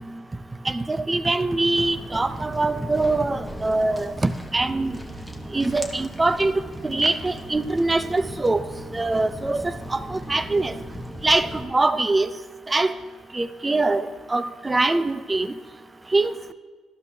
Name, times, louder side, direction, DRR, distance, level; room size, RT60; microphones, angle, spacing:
voice 1, 0.7-5.0 5.5-6.5 6.8-8.6 8.9-10.7 11.2-12.3 12.7-12.9 13.3-15.5 16.1-16.3, right 2 dB, 20° right, 13 dB, 0.5 m, -23 dB
Walk footsteps, 1.7-11.6, equal, 5° right, 1.3 m, -37 dB
12.5 x 12.0 x 2.8 m, 1.4 s
cardioid pair, 90°, 0 cm